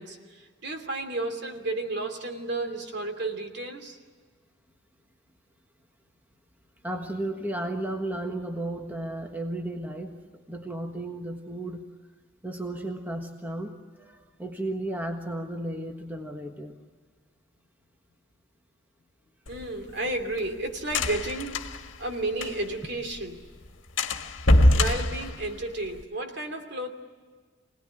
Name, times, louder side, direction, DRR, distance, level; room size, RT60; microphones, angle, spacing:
voice 1, 0.0-4.0 19.5-21.6 22.0-23.4 24.7-26.9, right 2 dB, 55° right, 5 dB, 2.9 m, -32 dB
voice 2, 6.8-10.1 10.5-11.8 12.4-16.7, right 1 dB, 10° right, 3 dB, 1.4 m, -34 dB
sound 1, 19.5-22.9 23.2-23.3 23.5-23.7 24.0-26.0, left 1 dB, 70° left, 1.7 m, -24 dB
25.5 x 18.5 x 10.0 m, 1.5 s
head